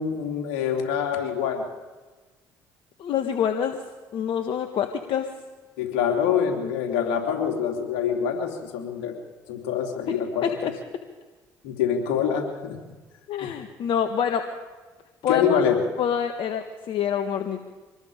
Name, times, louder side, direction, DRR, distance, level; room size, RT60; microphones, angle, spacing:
voice 1, 0.0-1.6 5.8-9.1 9.5-10.5 11.6-12.8 13.4-13.5 15.3-15.8, left 7 dB, 80° left, 2 dB, 3.4 m, -25 dB
voice 2, 3.0-3.8 4.1-5.3 10.4-10.7 13.3-14.4 15.2-15.6 16.0-17.6, left 8 dB, 65° left, 6 dB, 1.6 m, -26 dB
25.5 x 20.0 x 5.2 m, 1.3 s
hypercardioid pair, 60°, 9 cm